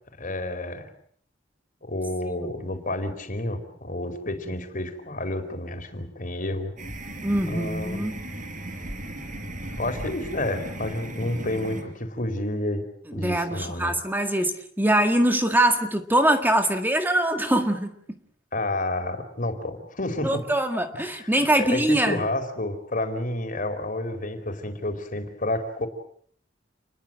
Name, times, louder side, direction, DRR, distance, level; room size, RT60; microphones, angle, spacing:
voice 1, 0.2-0.9 1.8-6.7 7.5-8.0 9.8-12.8 13.1-14.0 18.5-20.4 20.9-25.9, left 1 dB, 45° left, 7 dB, 4.6 m, -30 dB
sound 1, 6.8-11.8, right 1 dB, 45° right, 5.4 m, -36 dB
voice 2, 7.2-8.2 13.1-17.9 20.2-22.2, right 1 dB, 10° right, 6 dB, 1.8 m, -23 dB
29.5 x 22.0 x 7.8 m, 0.62 s
head